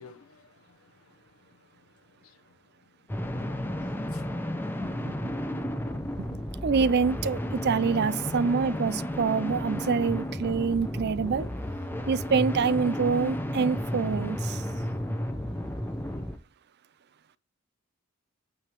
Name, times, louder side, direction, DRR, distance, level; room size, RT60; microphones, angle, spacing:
voice 1, 0.0-3.0 3.8-4.2 4.6-4.7 8.2-8.4, left 4 dB, 90° left, 1.0 m, -53 dB
sound 1, 3.1-16.4, equal, 10° left, 0.8 m, -32 dB
voice 2, 4.8-5.1 5.5-5.6 6.6-11.5 12.1-14.6, right 5 dB, 50° right, 0.5 m, -26 dB
9.1 x 6.6 x 3.1 m
head